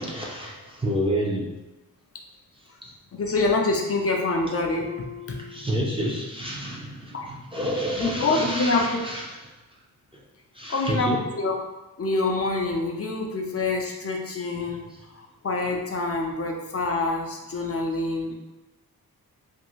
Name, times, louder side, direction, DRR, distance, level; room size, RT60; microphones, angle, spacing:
voice 1, 0.0-1.5 2.8-2.9 5.5-9.2 10.1-10.2 10.5-11.2, equal, 15° right, -5 dB, 0.5 m, -29 dB
voice 2, 3.1-5.4 7.1-7.4 8.0-9.0 10.7-11.6 12.0-18.3, left 3 dB, 40° left, 1 dB, 0.4 m, -26 dB
Harp, 4.7-6.5 6.8-7.2 7.8-7.9, left 5 dB, 60° right, 0.7 m, -42 dB
2.6 x 2.5 x 3.0 m, 1.0 s
wide cardioid pair, 115°, 36 cm